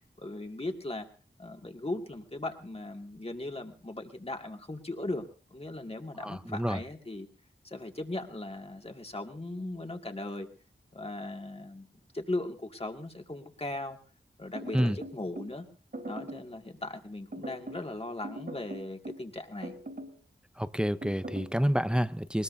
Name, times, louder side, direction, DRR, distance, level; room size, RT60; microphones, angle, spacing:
voice 1, 0.2-1.1 1.4-5.2 5.5-7.3 7.6-10.5 10.9-11.9 12.1-14.0 14.4-15.7 16.1-19.7, left 2 dB, 30° left, 4 dB, 2.2 m, -38 dB
voice 2, 6.2-6.8 14.7-15.0 20.6-22.4, equal, 5° right, 13 dB, 0.7 m, -28 dB
sound 1, 14.5-15.5 15.9-16.5 17.3-17.9 18.2-19.3 19.6-20.2 21.0-21.5, right 1 dB, 60° right, 3.5 m, -41 dB
20.5 x 20.0 x 2.7 m, 0.36 s
wide cardioid pair, 50°, 19 cm